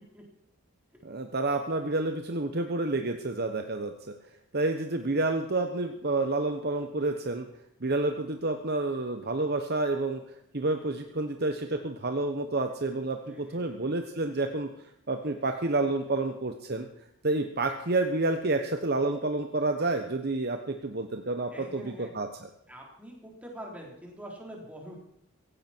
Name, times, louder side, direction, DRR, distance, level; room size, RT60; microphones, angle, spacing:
voice 1, 1.0-3.9 4.5-7.5 7.8-10.2 10.5-14.7 15.1-16.9 17.2-22.5, right 2 dB, 50° right, 5 dB, 1.1 m, -29 dB
voice 2, 13.2-13.9 21.4-22.1 22.7-25.0, right 1 dB, 5° right, -1 dB, 4.3 m, -45 dB
16.5 x 16.5 x 4.6 m, 0.78 s
head